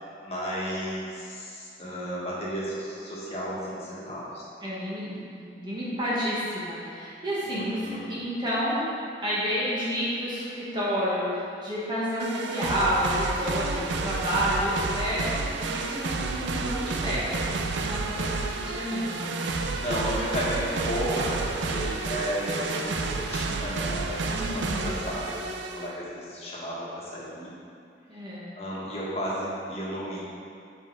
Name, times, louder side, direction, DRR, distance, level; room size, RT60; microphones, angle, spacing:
voice 1, 0.2-4.5 7.4-8.1 18.3-18.7 19.7-27.5 28.6-30.2, equal, 35° left, -7 dB, 1.5 m, -33 dB
voice 2, 4.6-8.9 9.2-17.6 17.8-19.3 24.3-24.9 28.1-28.5, equal, 25° right, -9 dB, 1.3 m, -30 dB
sound 1, 12.2-25.9, right 3 dB, 80° right, 0.5 m, -30 dB
6.4 x 4.9 x 4.6 m, 2.5 s
head